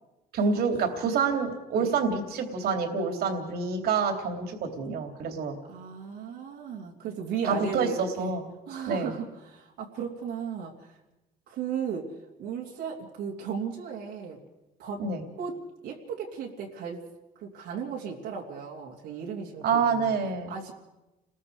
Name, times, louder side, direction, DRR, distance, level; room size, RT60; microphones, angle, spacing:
voice 1, 0.3-5.6 7.4-8.4 8.9-9.1 15.0-15.2 19.6-20.5, right 5 dB, 65° right, 5 dB, 3.2 m, -27 dB
voice 2, 5.7-8.3 8.7-10.9 11.5-12.1 12.4-14.4 14.8-15.0 15.4-17.0 17.4-20.7, right 7 dB, 80° right, -2 dB, 3.0 m, -36 dB
30.0 x 21.0 x 5.0 m, 1.0 s
cardioid pair, 110°, 17 cm